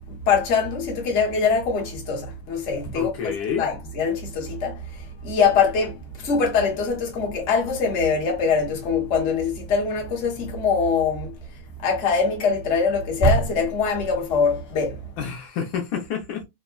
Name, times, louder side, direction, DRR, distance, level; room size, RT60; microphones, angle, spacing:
voice 1, 0.1-4.8 5.2-11.3 11.8-15.0, left 5 dB, 45° left, 0.8 m, -23 dB
voice 2, 2.9-3.7 15.2-16.4, left 7 dB, 75° left, 1.3 m, -29 dB
3.5 x 2.1 x 2.3 m
omnidirectional pair, 2.4 m